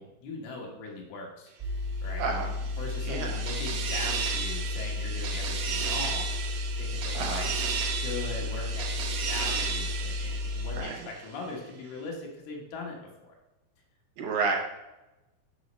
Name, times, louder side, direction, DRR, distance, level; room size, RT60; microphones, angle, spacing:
voice 1, 0.0-1.7 2.0-2.2 2.6-6.3 6.8-7.7 8.0-13.3 14.3-14.6, left 3 dB, 80° left, 0 dB, 3.1 m, -40 dB
sound 1, 1.6-10.8, left 3 dB, 50° right, 0.9 m, -33 dB
voice 2, 2.2-2.5 3.0-3.4 7.1-7.5 10.7-11.0 14.2-14.6, right 4 dB, 75° right, 1 dB, 2.4 m, -30 dB
sound 2, 2.2-11.3, right 6 dB, 90° right, 1.8 m, -34 dB
6.3 x 6.2 x 3.0 m, 1.0 s
omnidirectional pair, 4.4 m